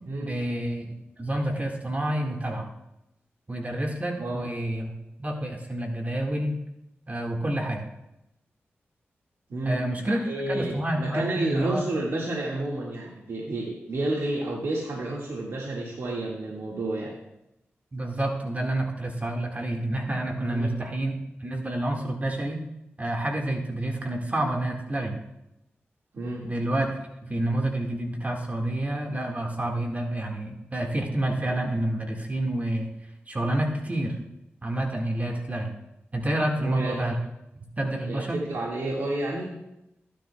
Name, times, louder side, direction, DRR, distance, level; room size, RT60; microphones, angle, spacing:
voice 1, 0.2-2.7 3.5-4.9 5.2-6.6 7.1-7.9 9.7-11.8 17.9-21.2 21.4-22.6 23.0-25.2 26.4-26.9 27.2-32.9 33.3-34.2 34.6-35.7 36.1-37.2 37.8-38.4, right 1 dB, 35° right, 1 dB, 1.7 m, -28 dB
voice 2, 4.2-4.5 9.5-17.1 20.5-20.8 26.1-26.5 36.6-37.0 38.1-39.6, right 2 dB, 75° right, -3 dB, 1.8 m, -30 dB
15.0 x 10.5 x 2.3 m, 0.87 s
cardioid pair, 45°, 5 cm